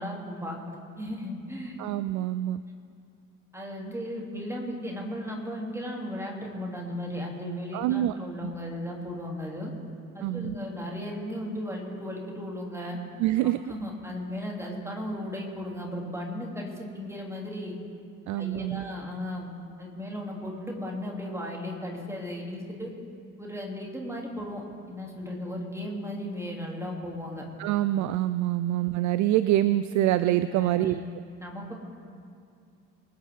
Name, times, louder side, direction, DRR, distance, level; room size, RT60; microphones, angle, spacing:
voice 1, 0.0-1.8 3.5-9.7 10.1-13.0 13.7-17.7 18.4-19.5 19.8-22.9 23.4-24.6 24.9-27.5 30.5-31.0 31.4-31.7, left 1 dB, 5° right, -1 dB, 3.0 m, -36 dB
voice 2, 1.8-2.6 7.7-8.1 10.2-10.6 13.2-13.6 18.3-18.8 27.6-31.0, right 14 dB, 45° right, 14 dB, 0.5 m, -25 dB
24.0 x 8.6 x 3.7 m, 2.4 s
figure-of-eight pair, 45°, 40 cm